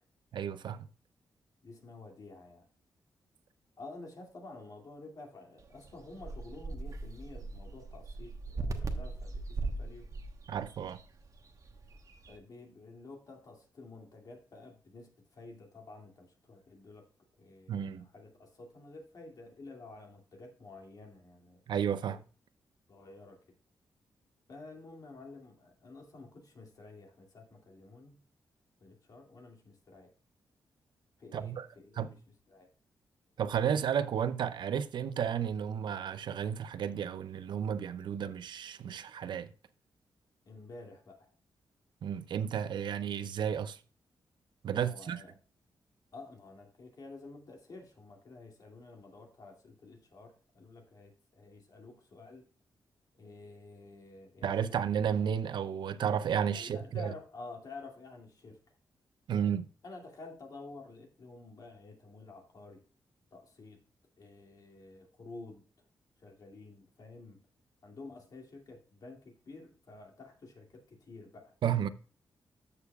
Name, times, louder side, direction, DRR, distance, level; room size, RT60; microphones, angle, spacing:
voice 1, 0.3-0.8 10.5-11.0 17.7-18.1 21.7-22.2 31.3-31.7 32.0-32.1 33.4-39.5 42.0-43.8 44.6-45.2 54.4-57.1 59.3-59.7 71.6-71.9, right 8 dB, 75° right, 0.5 m, -32 dB
voice 2, 1.6-2.7 3.8-10.1 12.3-17.1 17.4-21.6 22.0-22.2 22.9-23.4 24.5-28.2 28.8-30.1 31.2-32.2 32.5-32.7 40.5-41.3 44.8-45.3 46.1-52.4 53.2-54.8 56.5-58.8 59.8-62.8 63.3-63.8 64.2-65.6 66.2-67.4 67.8-71.5, left 3 dB, 50° left, 2.3 m, -50 dB
sound 1, 5.6-12.4, right 3 dB, 45° right, 1.1 m, -40 dB
13.5 x 6.8 x 2.3 m
wide cardioid pair, 115°, 8 cm